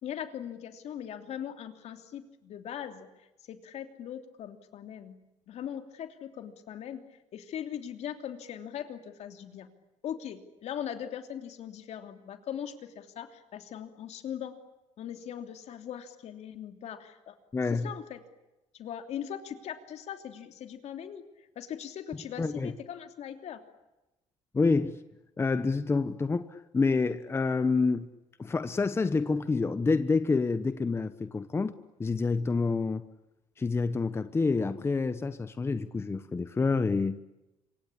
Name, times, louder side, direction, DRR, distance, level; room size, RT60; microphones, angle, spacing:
voice 1, 0.0-3.1 3.5-5.2 5.5-7.0 7.3-9.7 10.0-14.6 15.0-17.3 17.7-18.2 18.7-21.2 21.5-23.6, left 9 dB, 65° left, 3.1 m, -40 dB
voice 2, 17.5-17.9 22.4-22.7 24.5-25.0 25.4-28.1 28.4-31.7 32.0-33.0 33.6-37.2, left 4 dB, 20° left, 1.0 m, -28 dB
26.5 x 24.5 x 8.7 m
cardioid pair, 130°, 12 cm